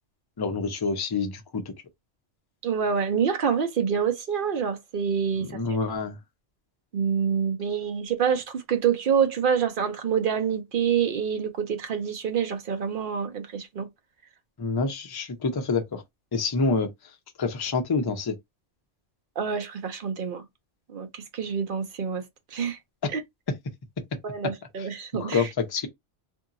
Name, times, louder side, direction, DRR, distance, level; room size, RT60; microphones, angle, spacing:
voice 1, 0.4-1.6 5.4-6.2 14.6-16.0 16.3-16.9 17.4-18.4 24.8-24.9 25.1-25.9, left 4 dB, 30° left, 0.4 m, -27 dB
voice 2, 2.6-5.8 6.9-13.9 19.4-20.4 20.9-22.2 22.5-22.8 23.1-23.2 24.2-25.4, right 7 dB, 55° right, 0.8 m, -27 dB
2.8 x 2.7 x 2.5 m
omnidirectional pair, 1.2 m